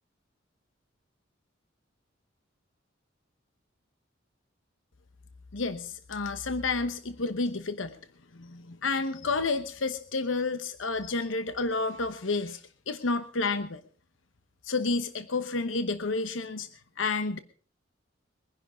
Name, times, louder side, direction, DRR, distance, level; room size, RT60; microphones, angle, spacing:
voice 1, 5.5-8.0 8.3-13.8 14.6-16.7 17.0-17.4, left 3 dB, 80° left, 11 dB, 1.0 m, -30 dB
22.0 x 10.5 x 5.1 m, 0.42 s
head